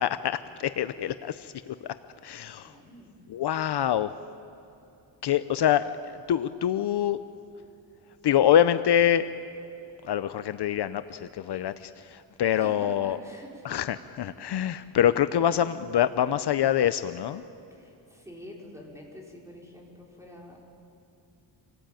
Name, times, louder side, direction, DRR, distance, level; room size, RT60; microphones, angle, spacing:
voice 1, 0.0-2.0 2.2-2.8 3.3-4.2 5.2-7.2 8.2-9.3 10.0-13.2 13.6-17.4, left 10 dB, 60° left, 12 dB, 0.7 m, -25 dB
voice 2, 2.6-3.1 12.5-13.6 17.7-20.7, left 1 dB, 5° right, -2 dB, 4.7 m, -46 dB
26.5 x 18.0 x 9.0 m, 2.7 s
wide cardioid pair, 155°, 45 cm